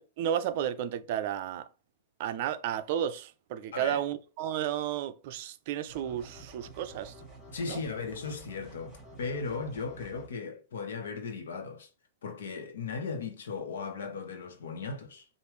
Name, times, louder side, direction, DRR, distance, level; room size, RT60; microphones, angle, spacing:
voice 1, 0.0-1.6 2.2-7.1 7.7-7.8, right 10 dB, 50° right, 0.5 m, -32 dB
sound 1, 5.9-10.3, right 2 dB, 10° right, 2.4 m, -50 dB
voice 2, 7.5-11.9 12.2-15.2, left 4 dB, 85° left, 1.1 m, -37 dB
5.0 x 2.5 x 3.1 m
supercardioid pair, 155°, 0 cm